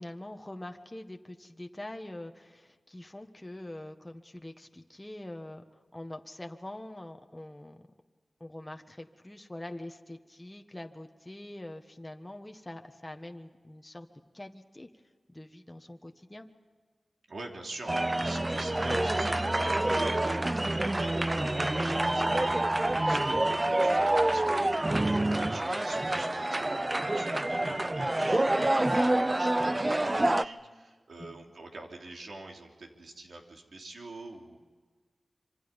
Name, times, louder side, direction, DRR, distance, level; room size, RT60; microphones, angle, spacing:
voice 1, 0.0-7.8 8.4-14.1 14.3-14.9 15.3-16.5 28.1-28.3 31.2-31.5, left 1 dB, 20° left, 4 dB, 1.4 m, -44 dB
voice 2, 17.3-34.6, right 2 dB, 85° right, 1 dB, 3.2 m, -45 dB
sound 1, 17.9-30.4, right 1 dB, 25° right, 0.6 m, -27 dB
26.0 x 25.5 x 5.4 m, 1.5 s
wide cardioid pair, 80°, 0 cm